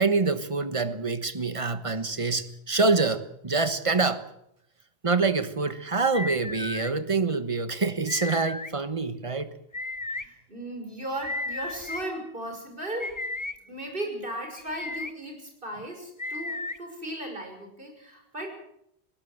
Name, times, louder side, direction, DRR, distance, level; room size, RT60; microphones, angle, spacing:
voice 1, 0.0-4.2 5.0-9.5, right 4 dB, 30° right, 12 dB, 1.3 m, -26 dB
sound 1, 6.1-6.9 8.1-8.7 9.7-10.2 11.2-12.0 13.0-13.6 14.6-15.1 16.2-16.8, left 2 dB, 20° left, 0.8 m, -34 dB
voice 2, 10.0-13.1 13.6-18.5, right 1 dB, 60° right, 3 dB, 6.3 m, -36 dB
20.0 x 18.0 x 8.0 m, 0.74 s
omnidirectional pair, 1.1 m